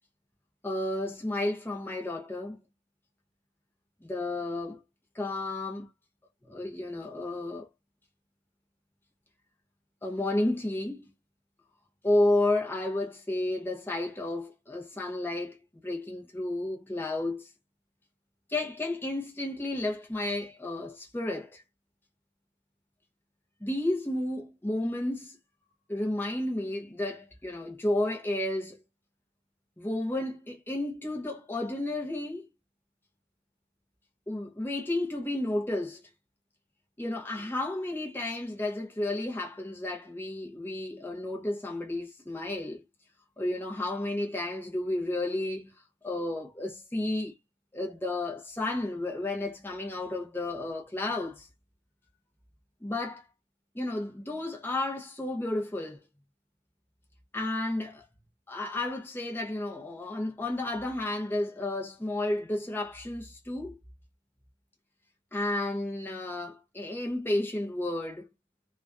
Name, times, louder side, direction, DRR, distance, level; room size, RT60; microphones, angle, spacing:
voice 1, 0.6-2.6 4.1-4.8 5.1-5.9 6.4-7.7 10.0-11.1 12.0-15.6 15.8-17.5 18.5-21.6 23.6-25.4 25.9-28.8 29.8-32.5 34.3-36.0 37.0-42.8 43.4-45.7 46.0-47.3 47.7-51.5 52.8-53.3 53.7-56.1 57.3-58.1 58.5-63.8 65.3-68.3, left 1 dB, 10° left, 0.6 m, -32 dB
2.5 x 2.2 x 2.2 m
head